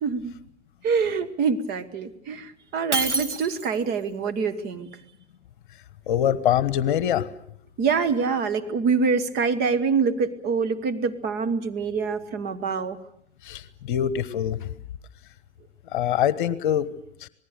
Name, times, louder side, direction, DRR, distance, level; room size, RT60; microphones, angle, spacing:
voice 1, 0.0-0.3 0.8-4.9 7.8-13.0, right 5 dB, 25° right, 10 dB, 1.5 m, -25 dB
Shatter, 2.9-3.9, right 3 dB, 85° right, 2.3 m, -27 dB
voice 2, 6.1-7.3 13.4-14.7 15.9-16.9 17.2-17.3, left 10 dB, 45° left, 16 dB, 1.3 m, -24 dB
26.5 x 19.5 x 6.7 m, 0.69 s
figure-of-eight pair, 105°, 35 cm